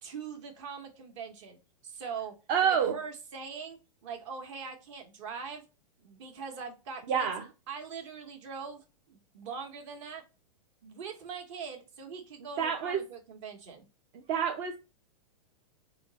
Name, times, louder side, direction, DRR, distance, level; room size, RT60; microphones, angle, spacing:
voice 1, 0.0-2.3 2.6-5.6 6.0-7.3 7.7-10.2 10.8-13.9, right 5 dB, 50° right, 1.1 m, -42 dB
voice 2, 2.5-3.0 7.1-7.4 12.6-13.0 14.3-14.8, right 7 dB, 35° right, 0.4 m, -27 dB
4.3 x 2.0 x 3.9 m
hypercardioid pair, 145°, 20 cm